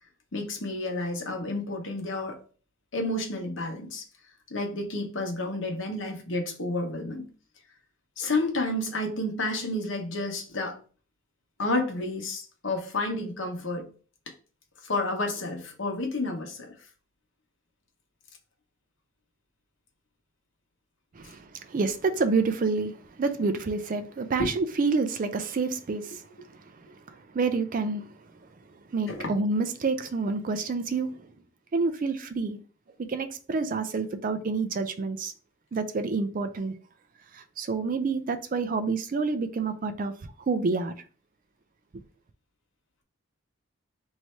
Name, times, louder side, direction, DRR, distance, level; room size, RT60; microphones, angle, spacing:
voice 1, 0.3-2.4 2.9-4.0 4.5-7.2 8.2-10.8 11.6-13.9 14.8-16.7 24.4-24.5 29.1-29.3, left 2 dB, 60° left, 1.0 m, -30 dB
voice 2, 21.1-26.3 26.6-28.2 28.9-31.3 31.7-32.6 33.1-35.3 35.7-36.7 37.3-40.9, right 4 dB, 40° right, 0.4 m, -28 dB
3.1 x 2.7 x 4.4 m
head